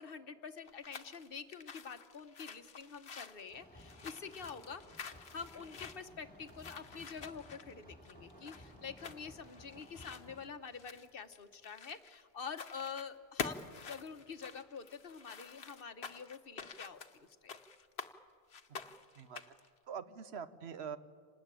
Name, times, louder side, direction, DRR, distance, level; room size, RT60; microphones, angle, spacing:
voice 1, 0.0-4.8 5.3-17.6, left 6 dB, 60° left, 9 dB, 1.2 m, -47 dB
sound 1, 0.6-12.2 12.5-13.1 13.4-18.1 18.5-19.7, left 5 dB, 80° left, 1.3 m, -48 dB
sound 2, 3.5-10.4, equal, 10° left, 4.2 m, -57 dB
voice 2, 18.7-21.0, right 7 dB, 90° right, 12 dB, 1.2 m, -46 dB
27.0 x 19.5 x 8.9 m, 2.1 s
omnidirectional pair, 1.0 m